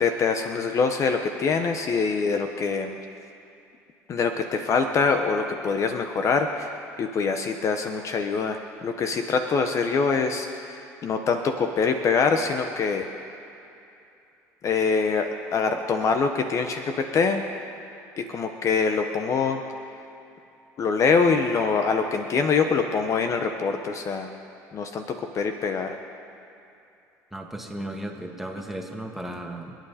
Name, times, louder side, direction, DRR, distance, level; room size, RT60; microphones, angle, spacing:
voice 1, 0.0-3.0 4.1-13.1 14.6-17.4 18.2-19.6 20.8-24.3 24.7-26.0, left 5 dB, 45° left, 6 dB, 1.0 m, -24 dB
voice 2, 27.3-29.8, right 1 dB, 5° right, 0 dB, 2.1 m, -35 dB
27.5 x 9.2 x 4.3 m, 2.7 s
supercardioid pair, 95°, 7 cm